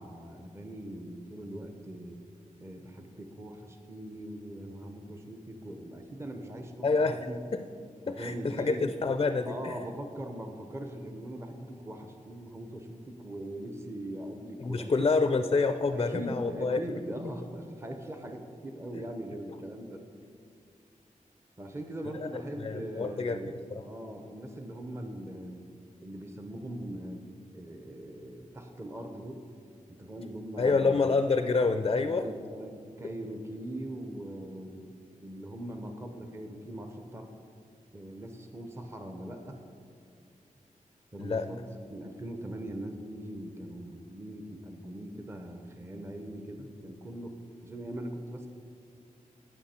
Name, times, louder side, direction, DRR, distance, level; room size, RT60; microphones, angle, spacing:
voice 1, 0.0-2.2 2.6-7.4 8.0-8.8 9.5-15.1 15.9-20.1 21.6-23.6 23.8-25.6 26.0-27.2 27.5-29.4 29.9-31.1 32.0-34.9 35.2-37.3 37.9-39.6 41.1-48.5, right 1 dB, 20° right, 5 dB, 0.7 m, -41 dB
voice 2, 6.8-7.2 7.5-7.6 8.1-9.8 14.6-16.8 22.2-22.3 22.6-23.4 23.7-23.8 30.6-32.2 41.2-41.5, left 4 dB, 35° left, 9 dB, 0.4 m, -27 dB
16.0 x 6.1 x 4.3 m, 2.3 s
wide cardioid pair, 110°, 14 cm